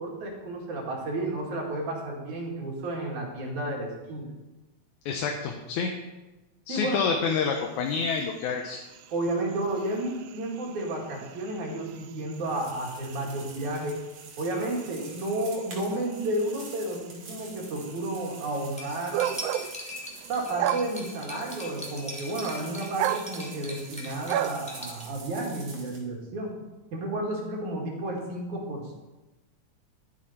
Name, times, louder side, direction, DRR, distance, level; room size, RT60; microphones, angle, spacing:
voice 1, 0.0-4.3 6.7-7.0 9.1-14.0 14.4-19.2 20.3-26.6 26.9-28.9, right 1 dB, 70° right, 0 dB, 3.6 m, -32 dB
voice 2, 5.1-5.9 6.7-8.8, left 5 dB, 80° left, 2 dB, 2.3 m, -28 dB
sound 1, 7.2-25.2, right 12 dB, 85° right, 1.4 m, -37 dB
sound 2, 12.3-26.0, right 3 dB, 50° right, 3.1 m, -47 dB
Cutlery silverware, 18.8-25.0, equal, 5° left, 1.3 m, -41 dB
12.0 x 11.0 x 4.4 m, 1.1 s
omnidirectional pair, 3.5 m